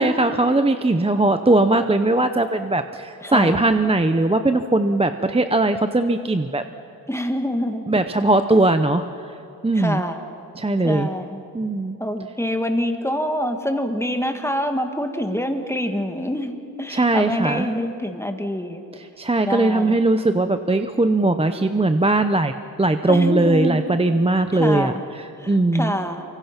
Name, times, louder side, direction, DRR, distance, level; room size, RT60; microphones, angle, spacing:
voice 1, 0.0-6.6 7.9-9.3 9.6-10.0 10.5-11.1 11.5-12.0 16.9-17.7 18.9-25.9, right 2 dB, 15° right, 8 dB, 0.7 m, -20 dB
voice 2, 3.2-3.6 7.1-7.9 9.7-10.2 10.8-11.4 12.0-18.8 19.4-20.0 23.1-23.8 24.5-25.0 25.4-26.2, equal, 5° left, 6 dB, 1.6 m, -26 dB
28.5 x 25.0 x 5.9 m, 2.9 s
wide cardioid pair, 135°, 40 cm